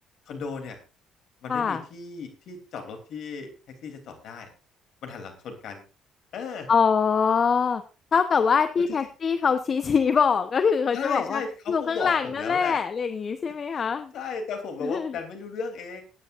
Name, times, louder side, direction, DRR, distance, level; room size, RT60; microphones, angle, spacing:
voice 1, 0.3-0.8 1.4-3.5 3.8-4.5 5.0-5.8 6.3-6.7 8.9-9.0 10.9-12.8 13.7-13.8 14.1-16.0, left 5 dB, 65° left, 5 dB, 3.1 m, -35 dB
voice 2, 1.5-1.8 6.7-7.8 8.1-11.4 11.7-14.1 14.8-15.1, left 6 dB, 45° left, 10 dB, 0.9 m, -23 dB
19.0 x 9.7 x 2.5 m, 0.32 s
hypercardioid pair, 55°, 0 cm